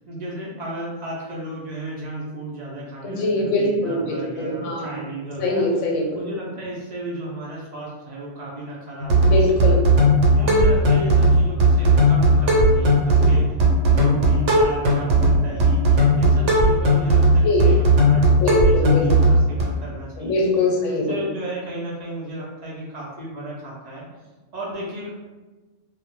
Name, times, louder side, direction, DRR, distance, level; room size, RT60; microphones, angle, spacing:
voice 1, 0.1-5.6 6.1-9.4 9.7-9.8 10.3-13.5 13.8-20.4 20.9-24.0 24.5-25.1, right 1 dB, 65° right, -5 dB, 0.4 m, -34 dB
voice 2, 3.0-5.0 5.4-6.0 9.2-9.8 17.4-17.7 18.3-19.1 20.2-21.2, left 2 dB, 80° left, -1 dB, 0.9 m, -23 dB
sound 1, 9.0-19.6, right 1 dB, 80° right, 0.9 m, -16 dB
2.0 x 2.0 x 3.0 m, 1.2 s
omnidirectional pair, 1.3 m